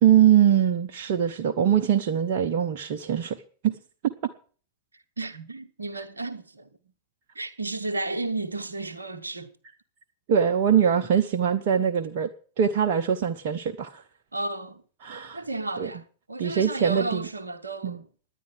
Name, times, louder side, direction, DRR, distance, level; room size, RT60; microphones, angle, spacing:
voice 1, 0.0-3.8 4.0-4.1 10.3-12.3 12.6-14.0 15.0-15.4 15.8-15.9 16.4-17.3 17.8-18.0, right 9 dB, 50° right, 0.7 m, -22 dB
voice 2, 5.2-6.7 7.3-9.5 14.3-14.8 15.3-18.1, right 2 dB, 80° right, 0.8 m, -33 dB
10.5 x 9.2 x 7.6 m
figure-of-eight pair, 90°, 0 cm